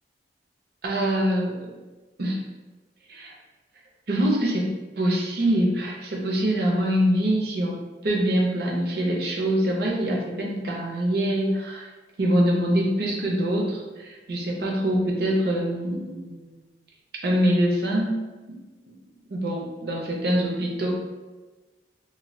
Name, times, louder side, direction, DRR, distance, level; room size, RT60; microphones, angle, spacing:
voice 1, 0.8-1.7 2.2-2.4 3.1-3.4 4.1-11.9 12.2-16.6 17.2-18.1 18.5-18.6 19.3-20.9, right 1 dB, 60° right, -1 dB, 0.6 m, -24 dB
2.6 x 2.2 x 3.1 m, 1.2 s
head